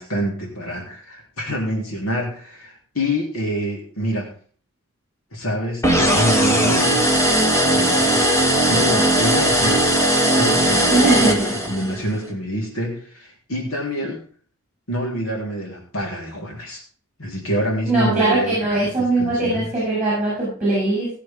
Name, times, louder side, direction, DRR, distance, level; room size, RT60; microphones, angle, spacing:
voice 1, 0.0-4.3 5.3-7.1 7.7-8.2 8.7-10.1 10.4-14.2 14.9-16.8 17.2-19.7, equal, 90° left, -1 dB, 3.5 m, -27 dB
sound 1, 5.8-12.0, right 1 dB, 15° left, 1.5 m, -18 dB
voice 2, 10.9-11.5 14.0-14.1 17.8-21.1, right 2 dB, 10° right, -7 dB, 7.4 m, -20 dB
17.5 x 7.5 x 3.7 m, 0.43 s
head